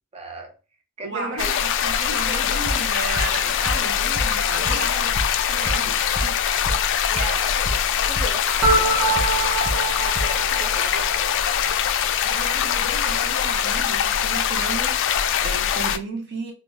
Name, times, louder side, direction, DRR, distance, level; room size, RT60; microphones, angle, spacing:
voice 1, 0.1-0.5 1.0-1.5 4.6-5.1 6.5-9.3 10.0-11.3, right 2 dB, 30° right, 0.6 m, -36 dB
voice 2, 1.0-5.2 5.5-6.4 12.2-16.5, right 3 dB, 50° right, 0.9 m, -34 dB
sound 1, 1.4-16.0, left 9 dB, 55° left, 0.3 m, -23 dB
sound 2, 2.7-3.3 3.6-3.7 4.1-4.2 4.6-5.2 5.6-5.7 6.1-6.3 6.6-7.3 7.6-7.7 8.1-8.2 8.6-9.3 9.6-9.7 10.1-10.3 10.6-10.7, equal, 10° left, 1.8 m, -28 dB
sound 3, 8.6-11.5, right 2 dB, 85° right, 0.8 m, -24 dB
3.6 x 2.4 x 2.7 m
head